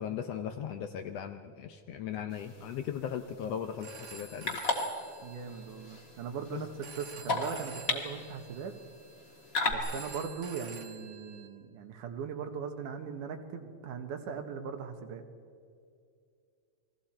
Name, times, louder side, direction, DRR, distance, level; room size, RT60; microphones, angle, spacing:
voice 1, 0.0-4.6 6.5-6.6, left 8 dB, 75° left, 7 dB, 1.6 m, -38 dB
sound 1, 2.3-9.7, left 3 dB, 35° left, 1.8 m, -37 dB
Telephone, 3.6-11.5, right 5 dB, 55° right, 2.4 m, -50 dB
voice 2, 5.2-8.7 9.7-15.2, right 6 dB, 85° right, 5 dB, 2.9 m, -39 dB
30.0 x 21.0 x 4.4 m, 2.4 s
omnidirectional pair, 3.5 m